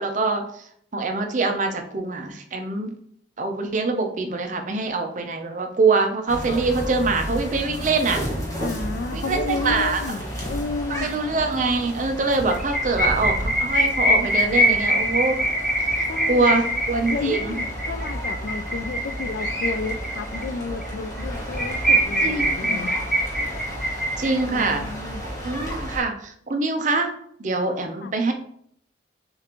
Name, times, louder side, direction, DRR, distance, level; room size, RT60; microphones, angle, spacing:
voice 1, 0.0-2.9 3.4-8.2 9.1-10.0 10.9-15.4 16.0-17.5 22.2-22.9 24.2-24.9 25.4-27.1 27.4-28.3, right 3 dB, 40° right, 4 dB, 0.5 m, -24 dB
sound 1, 6.3-26.0, equal, 15° left, 1.0 m, -32 dB
voice 2, 8.6-11.1 16.1-16.5 17.1-22.9 24.5-25.2 28.0-28.1, left 4 dB, 55° left, 11 dB, 0.3 m, -32 dB
sound 2, 12.5-20.4 20.8-20.9 21.2-21.3 21.5-24.6, right 1 dB, ahead, 0.6 m, -23 dB
6.5 x 2.5 x 2.9 m, 0.67 s
head